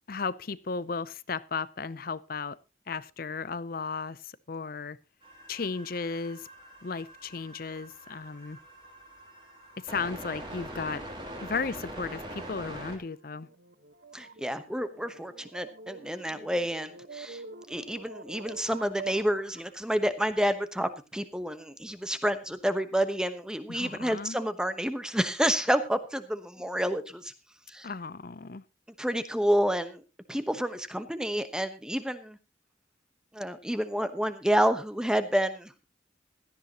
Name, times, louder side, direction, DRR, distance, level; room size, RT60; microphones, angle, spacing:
voice 1, 0.1-2.6 2.9-5.0 5.5-6.5 6.8-8.6 9.8-11.1 11.4-13.5 23.7-24.4 27.8-28.6, left 4 dB, 50° left, 0.6 m, -35 dB
sound 1, 5.2-13.0, right 1 dB, 25° right, 3.1 m, -43 dB
sound 2, 12.8-19.8, right 4 dB, 60° right, 1.3 m, -46 dB
voice 2, 14.1-17.4 17.7-27.3 27.7-27.9 29.0-30.0 30.3-32.4 33.3-35.8, equal, 5° right, 1.1 m, -29 dB
17.0 x 13.0 x 3.0 m
head